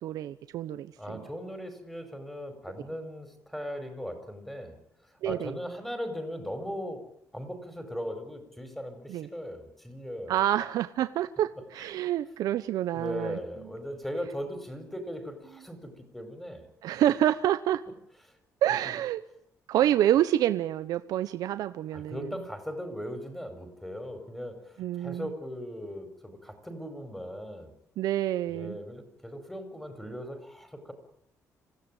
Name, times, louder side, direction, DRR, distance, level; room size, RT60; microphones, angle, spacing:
voice 1, 0.0-1.2 5.2-5.5 9.1-9.3 10.3-13.4 16.8-17.8 18.6-19.2 19.7-22.3 24.8-25.3 28.0-28.8, right 12 dB, 85° right, 11 dB, 1.0 m, -27 dB
voice 2, 1.0-4.8 5.2-10.4 11.8-11.9 12.9-16.7 21.9-27.7 28.5-30.9, equal, 5° left, 7 dB, 4.9 m, -38 dB
26.5 x 16.5 x 9.1 m, 0.75 s
cardioid pair, 160°, 6 cm